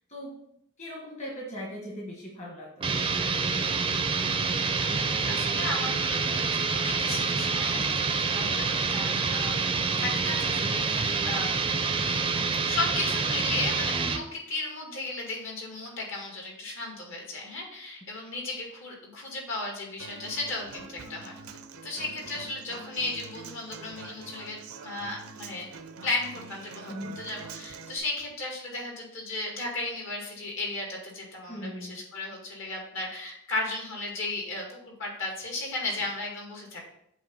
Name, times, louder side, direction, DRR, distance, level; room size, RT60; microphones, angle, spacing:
voice 1, 0.8-3.8 8.5-8.8 9.1-9.6 26.9-27.1 31.5-32.0, equal, 35° left, -3 dB, 1.2 m, -40 dB
sound 1, 2.8-14.3, right 4 dB, 25° right, 0.5 m, -27 dB
voice 2, 4.9-11.7 12.6-21.4 21.8-25.7 26.0-37.0, left 2 dB, 65° left, -1 dB, 2.0 m, -35 dB
Human voice / Acoustic guitar, 20.0-28.0, right 4 dB, 80° right, 0.6 m, -45 dB
7.8 x 3.0 x 5.3 m, 0.75 s
head